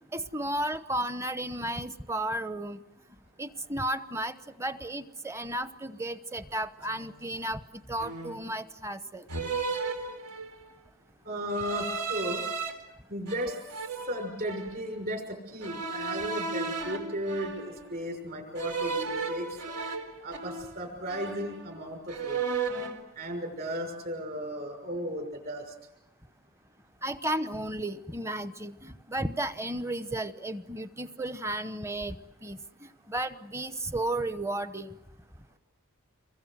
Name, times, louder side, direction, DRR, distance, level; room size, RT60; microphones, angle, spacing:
voice 1, 0.1-2.8 3.4-7.6 7.9-9.2 27.0-34.9, right 1 dB, 10° right, 12 dB, 0.9 m, -33 dB
sound 1, 6.9-7.1 8.0-8.5 9.3-10.7 11.5-12.7 13.3-14.8 15.6-18.0 18.6-20.8 21.1-21.8 22.1-23.0, right 4 dB, 90° right, 4.2 m, -35 dB
voice 2, 11.2-12.4 13.1-13.6 14.1-19.6 20.2-22.4 23.2-25.7, equal, 40° right, 3 dB, 6.2 m, -35 dB
28.5 x 22.5 x 7.9 m, 0.91 s
head